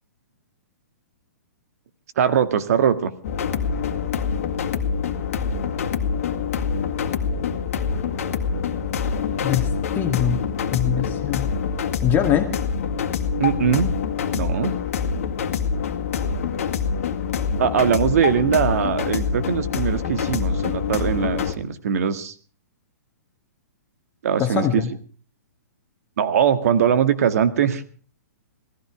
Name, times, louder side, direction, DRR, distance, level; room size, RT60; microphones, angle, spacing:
voice 1, 2.2-3.1 13.4-13.9 14.3-14.7 17.6-22.3 24.2-24.8 26.2-27.8, right 8 dB, 60° right, 11 dB, 1.8 m, -21 dB
sound 1, 3.2-21.5, left 6 dB, 55° left, 2.1 m, -25 dB
voice 2, 9.4-10.4 10.7-11.5 12.0-12.5 24.4-24.9, left 10 dB, 20° left, 5 dB, 1.9 m, -23 dB
19.0 x 14.5 x 4.9 m, 0.41 s
hypercardioid pair, 125°, 9 cm